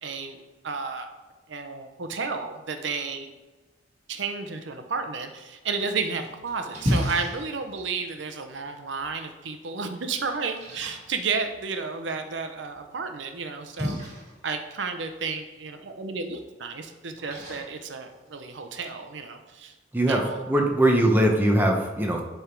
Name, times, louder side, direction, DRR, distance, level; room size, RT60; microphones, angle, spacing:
voice 1, 0.0-1.1 1.5-3.3 4.1-14.0 14.4-19.7 20.1-20.4, right 4 dB, 85° right, 7 dB, 0.7 m, -32 dB
Splash splatter, 5.8-18.8, equal, 35° right, 2.6 m, -36 dB
voice 2, 19.9-22.2, right 1 dB, 10° right, 1 dB, 0.8 m, -21 dB
10.5 x 3.5 x 4.5 m, 1.2 s
head